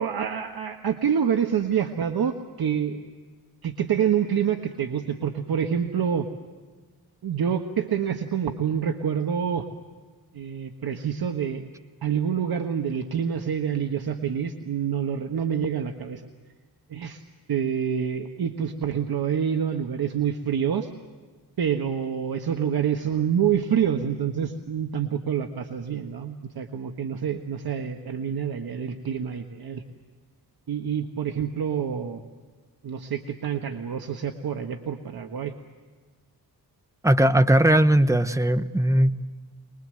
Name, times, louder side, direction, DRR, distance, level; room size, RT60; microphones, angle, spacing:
voice 1, 0.0-3.1 3.6-6.3 7.2-9.7 10.3-11.7 12.0-16.3 16.9-17.2 17.5-20.9 21.6-29.8 30.7-32.2 32.8-35.5, right 8 dB, 70° right, 5 dB, 1.5 m, -27 dB
voice 2, 37.0-39.1, right 1 dB, 10° right, 10 dB, 1.2 m, -19 dB
24.0 x 22.0 x 7.8 m, 1.4 s
cardioid pair, 100°, 39 cm